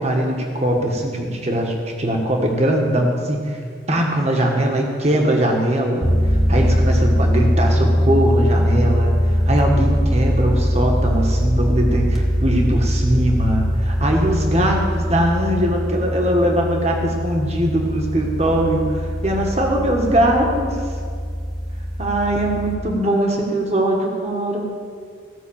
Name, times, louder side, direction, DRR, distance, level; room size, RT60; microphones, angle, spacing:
voice 1, 0.0-3.6 3.9-20.8 22.0-24.7, right 1 dB, 35° right, 1 dB, 1.5 m, -21 dB
sound 1, 6.0-22.8, equal, ahead, 1.1 m, -21 dB
16.0 x 5.9 x 7.2 m, 2.2 s
head